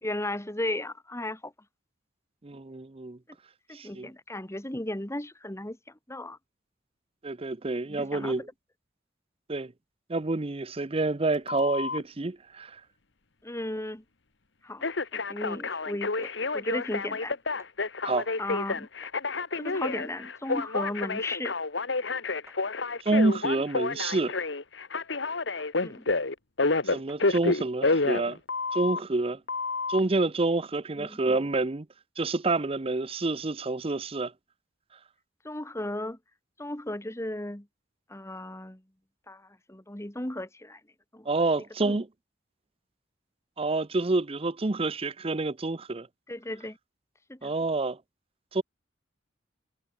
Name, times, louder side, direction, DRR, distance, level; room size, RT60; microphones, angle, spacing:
voice 1, 0.0-1.5 3.7-6.4 7.9-8.3 13.4-14.0 14.6-14.8 15.1-17.4 18.4-18.9 19.6-21.5 25.8-26.1 31.0-31.2 35.4-36.2 36.6-37.7 38.1-38.8 39.3-40.8 41.1-41.3 41.8-42.0 46.3-46.8 47.3-47.5, left 1 dB, 15° left, 1.8 m, -35 dB
voice 2, 2.4-3.2 3.7-4.1 7.2-8.5 9.5-9.7 10.1-12.8 18.0-18.3 23.0-24.3 26.8-28.4 28.7-29.4 29.9-31.9 32.2-34.3 41.3-42.1 43.6-46.1 47.4-48.0 48.5-48.6, right 2 dB, 30° right, 0.7 m, -28 dB
Telephone, 11.5-12.0 14.8-29.0 29.5-30.0, left 3 dB, 65° left, 1.5 m, -29 dB
sound 1, 16.2-16.4 17.6-17.7 19.0-19.2 21.0-21.1 22.5-22.6 24.0-24.2 25.6-25.7 27.1-27.3, right 2 dB, 15° right, 8.0 m, -55 dB
head